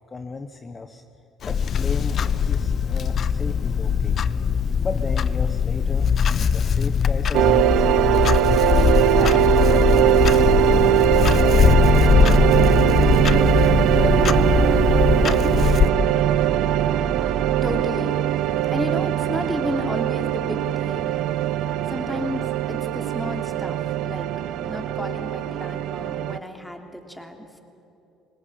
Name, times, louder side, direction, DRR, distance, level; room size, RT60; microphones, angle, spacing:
voice 1, 0.1-1.0 1.5-4.2 4.8-6.1 6.5-8.2 8.7-10.9 11.4-14.5 14.9-16.2, left 3 dB, 30° left, 7 dB, 1.2 m, -34 dB
Clock, 1.4-15.9, left 7 dB, 50° left, 0.8 m, -21 dB
sound 1, 7.3-26.4, right 12 dB, 70° right, 0.6 m, -21 dB
sound 2, 12.1-17.8, right 3 dB, 20° right, 1.2 m, -31 dB
voice 2, 17.6-18.4 18.7-21.2 21.9-24.3 24.6-27.5, left 1 dB, 5° left, 4 dB, 3.3 m, -32 dB
23.0 x 19.5 x 8.7 m, 2.9 s
supercardioid pair, 70°, 0 cm